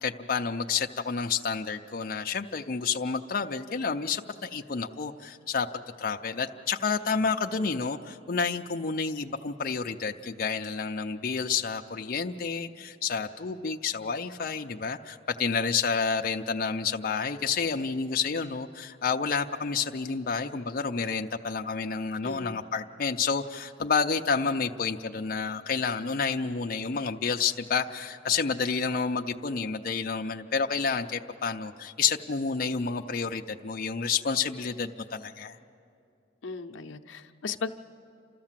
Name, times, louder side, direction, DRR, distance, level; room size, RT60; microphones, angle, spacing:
voice 1, 0.0-5.7 6.0-35.6, left 5 dB, 50° left, 3 dB, 0.5 m, -29 dB
voice 2, 22.2-22.6 36.4-37.7, left 4 dB, 85° left, 6 dB, 0.7 m, -36 dB
29.5 x 13.5 x 7.4 m, 2.5 s
head